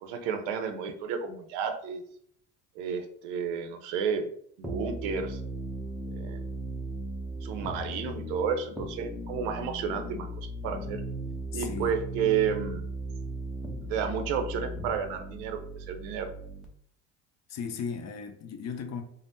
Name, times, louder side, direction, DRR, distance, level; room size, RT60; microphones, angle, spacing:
voice 1, 0.0-2.0 2.8-4.3 4.6-5.4 6.1-6.4 7.4-11.0 11.5-12.8 13.9-16.3, right 7 dB, 85° right, 0.6 m, -31 dB
sound 1, 4.6-16.7, right 1 dB, ahead, 0.6 m, -37 dB
voice 2, 11.5-12.0 17.5-19.0, left 6 dB, 45° left, 0.5 m, -36 dB
3.3 x 2.1 x 2.6 m
supercardioid pair, 90°, 39 cm